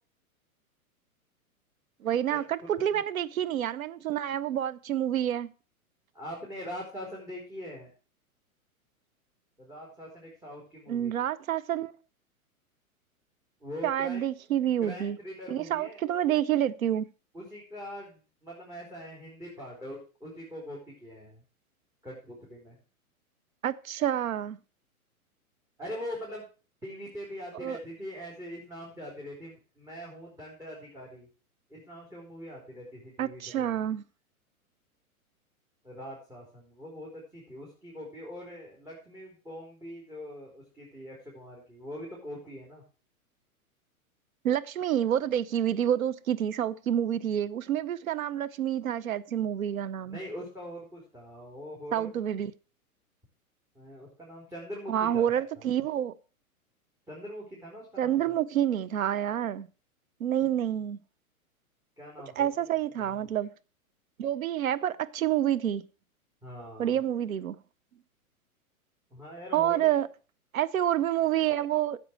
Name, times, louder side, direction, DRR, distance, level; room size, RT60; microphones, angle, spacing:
voice 1, 2.0-5.5 10.9-11.9 13.8-15.2 15.5-17.1 23.6-24.6 27.6-27.8 33.2-34.0 44.4-50.2 51.9-52.5 54.9-56.1 58.0-59.7 60.2-61.0 62.4-63.5 64.2-65.8 66.8-67.6 69.5-70.1 70.5-72.0, right 10 dB, 70° right, 1.0 m, -28 dB
voice 2, 6.1-7.9 9.6-11.1 13.6-14.3 14.8-16.4 17.3-21.4 22.0-22.8 25.8-26.4 26.8-31.3 31.7-33.8 35.8-42.8 50.0-52.2 53.8-55.7 57.1-58.4 62.0-62.5 63.0-63.4 66.4-67.0 69.1-70.0, equal, 5° right, 3.9 m, -43 dB
13.0 x 7.9 x 4.6 m
hypercardioid pair, 110°, 43 cm